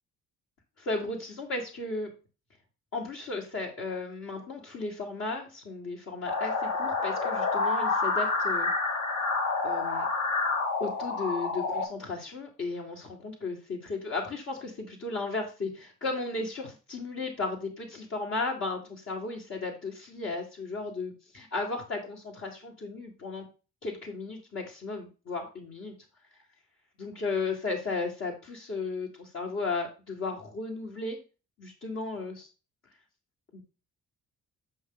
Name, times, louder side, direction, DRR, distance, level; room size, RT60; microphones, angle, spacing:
voice 1, 0.8-2.1 2.9-8.7 9.6-10.1 10.8-23.5 23.8-25.9 27.0-31.2 31.6-32.5 33.5-33.6, left 3 dB, 50° left, -4 dB, 1.9 m, -35 dB
sound 1, 6.3-11.8, left 3 dB, 65° left, 1.7 m, -28 dB
7.3 x 5.1 x 3.8 m, 0.32 s
cardioid pair, 125°, 31 cm